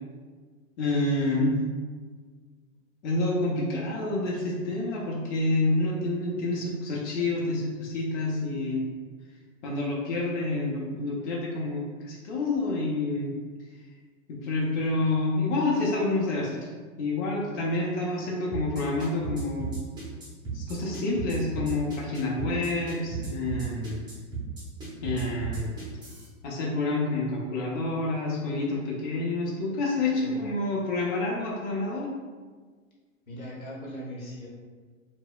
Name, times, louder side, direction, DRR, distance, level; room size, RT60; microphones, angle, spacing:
voice 1, 0.8-1.6 3.0-8.8 9.6-13.3 14.3-16.6 17.0-19.7 20.5-24.0 25.0-25.7 26.4-32.1, left 2 dB, 60° left, -3 dB, 0.6 m, -28 dB
sound 1, 18.5-26.3, right 5 dB, 10° right, 0.6 m, -35 dB
voice 2, 33.3-34.5, equal, 90° left, -4 dB, 0.9 m, -39 dB
2.7 x 2.0 x 2.3 m, 1.5 s
hypercardioid pair, 115°, 41 cm